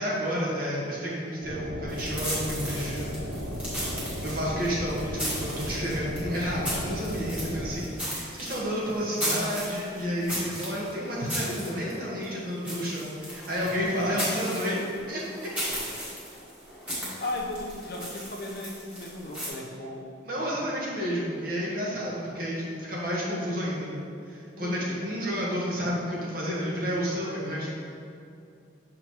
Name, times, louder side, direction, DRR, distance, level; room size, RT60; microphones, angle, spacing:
voice 1, 0.0-3.1 4.2-15.5 20.2-27.7, equal, 45° right, -5 dB, 1.3 m, -31 dB
sound 1, 1.4-7.8, equal, 65° right, 0.7 m, -35 dB
sound 2, 1.9-19.5, equal, 5° right, 1.5 m, -36 dB
voice 2, 13.6-14.2 15.8-16.1 17.0-20.0 24.6-25.0, left 2 dB, 55° left, -1 dB, 0.8 m, -37 dB
6.9 x 5.1 x 3.0 m, 2.5 s
head